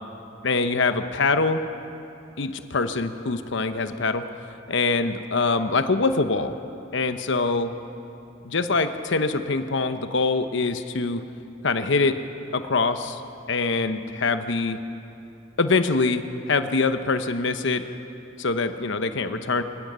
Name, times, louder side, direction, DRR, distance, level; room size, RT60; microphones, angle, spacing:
voice 1, 0.4-1.6 2.4-4.3 4.7-6.6 6.9-7.7 8.4-11.2 11.6-12.2 12.5-13.2 13.5-14.8 15.6-17.8 18.4-19.6, left 3 dB, 65° left, 9 dB, 1.0 m, -24 dB
25.0 x 17.0 x 6.8 m, 2.8 s
head